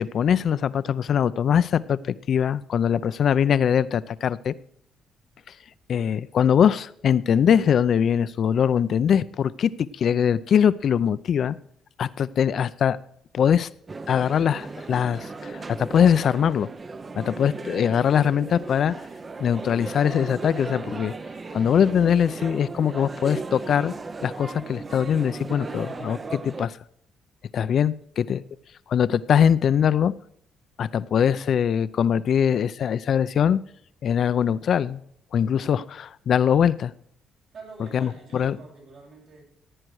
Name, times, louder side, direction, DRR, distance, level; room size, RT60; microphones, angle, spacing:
voice 1, 0.0-4.5 5.9-11.6 12.0-13.0 13.3-13.7 14.1-16.7 17.2-18.9 19.4-21.1 21.5-23.9 24.2-26.8 27.5-28.4 28.9-30.1 30.8-33.6 34.0-35.0 35.3-36.9 37.9-38.6, left 8 dB, 60° left, 0.6 m, -22 dB
sound 1, 13.9-26.7, right 3 dB, 30° right, 0.8 m, -36 dB
voice 2, 37.5-39.4, right 4 dB, 70° right, 7.1 m, -45 dB
15.5 x 9.0 x 4.8 m
cardioid pair, 80°, 0 cm